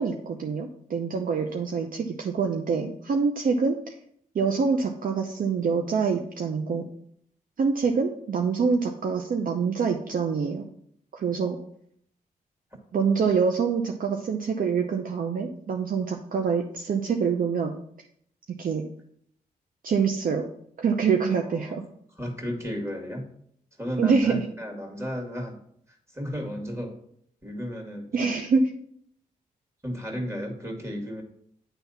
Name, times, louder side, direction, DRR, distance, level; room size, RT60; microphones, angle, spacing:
voice 1, 0.0-3.8 4.3-6.8 7.6-10.6 11.1-11.6 12.9-17.7 18.6-18.8 19.8-20.4 20.8-21.8 24.0-24.4 28.1-28.6, right 5 dB, 65° right, 3 dB, 0.7 m, -25 dB
voice 2, 21.4-21.8 22.2-23.2 23.8-25.6 26.1-27.0 27.4-28.4 29.8-31.2, equal, 15° right, 2 dB, 2.3 m, -34 dB
9.1 x 3.5 x 5.6 m, 0.68 s
cardioid pair, 65°, 15 cm